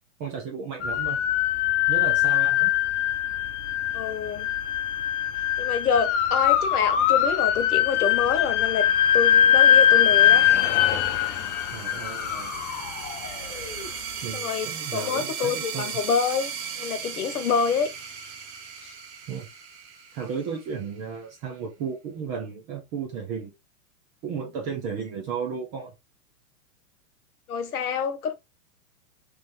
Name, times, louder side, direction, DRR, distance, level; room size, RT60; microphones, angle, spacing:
voice 1, 0.2-1.2 1.9-2.7 11.7-12.5 14.2-16.0 19.3-19.5 20.1-23.5 24.2-25.9, right 6 dB, 20° right, 0.3 m, -34 dB
sound 1, 0.8-13.9, left 10 dB, 50° left, 0.7 m, -22 dB
voice 2, 3.9-4.5 5.6-10.5 14.3-17.9 18.8-18.9 27.5-28.3, left 6 dB, 75° left, 1.0 m, -27 dB
sound 2, 9.7-21.0, right 7 dB, 50° right, 1.0 m, -37 dB
3.1 x 3.1 x 3.1 m
hypercardioid pair, 120°, 45 cm